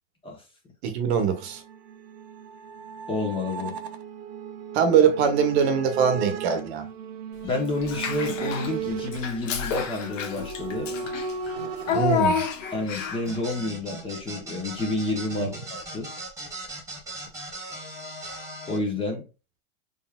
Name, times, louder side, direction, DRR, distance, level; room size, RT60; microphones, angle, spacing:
voice 1, 0.8-1.6 4.7-6.8 11.9-12.4 15.4-15.5, right 7 dB, 60° right, 1.1 m, -22 dB
sound 1, 1.3-11.9, right 6 dB, 35° right, 0.5 m, -36 dB
voice 2, 3.1-3.7 7.4-10.9 12.7-16.1 18.7-19.2, left 2 dB, 15° left, 1.0 m, -29 dB
Child speech kid speaking / Bathtub (filling or washing), 7.8-8.7 9.1-13.4, left 5 dB, 90° left, 1.3 m, -29 dB
sound 2, 13.2-18.8, right 1 dB, 10° right, 1.4 m, -39 dB
4.2 x 3.4 x 2.3 m
supercardioid pair, 155°, 37 cm